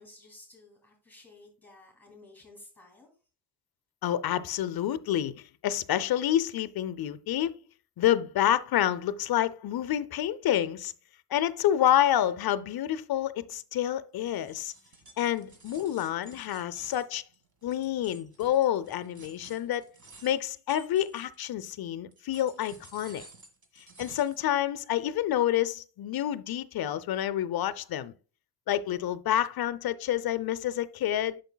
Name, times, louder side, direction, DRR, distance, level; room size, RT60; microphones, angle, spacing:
voice 1, 0.0-3.1, left 2 dB, 5° left, 2.8 m, -53 dB
voice 2, 4.0-7.5 8.0-10.9 11.3-14.7 15.2-17.2 17.6-19.8 20.2-23.2 24.0-28.1 28.7-31.4, left 11 dB, 55° left, 0.6 m, -28 dB
sound 1, 14.2-21.6 22.1-24.5, right 3 dB, 40° right, 1.7 m, -53 dB
8.0 x 6.5 x 2.2 m
cardioid pair, 80°, 46 cm